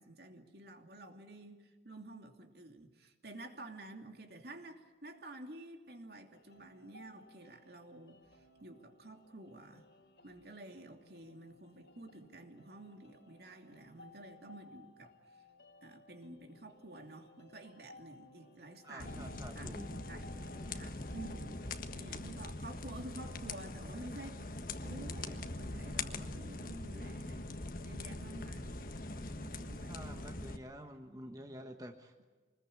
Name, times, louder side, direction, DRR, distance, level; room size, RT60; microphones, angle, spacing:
voice 1, 0.0-9.9 10.2-15.4 15.8-19.8 20.1-21.6 21.9-27.4 27.8-28.9 29.4-30.4 30.7-30.8 31.0-31.6, right 2 dB, 65° right, 4 dB, 2.7 m, -51 dB
sound 1, 6.3-22.5, left 2 dB, 75° left, 3.6 m, -60 dB
voice 2, 18.8-19.9 29.9-32.2, equal, 20° right, 4 dB, 1.4 m, -49 dB
sound 2, 19.0-30.6, left 2 dB, 50° left, 1.5 m, -42 dB
24.5 x 21.0 x 8.7 m, 1.3 s
head